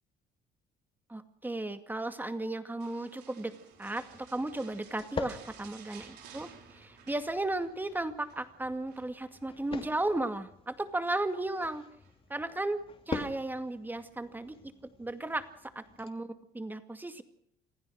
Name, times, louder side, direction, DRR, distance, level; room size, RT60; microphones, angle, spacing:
voice 1, 1.1-3.5 3.8-11.8 12.3-14.6 15.0-15.5 15.8-17.2, right 2 dB, 10° right, 9 dB, 2.2 m, -35 dB
sound 1, 2.8-8.4 8.9-9.9 11.0-11.5 12.0-12.2, right 8 dB, 80° right, 4.7 m, -55 dB
sound 2, 3.7-16.1, left 5 dB, 35° left, 2.7 m, -46 dB
26.5 x 15.5 x 6.5 m, 0.71 s
cardioid pair, 110°, 17 cm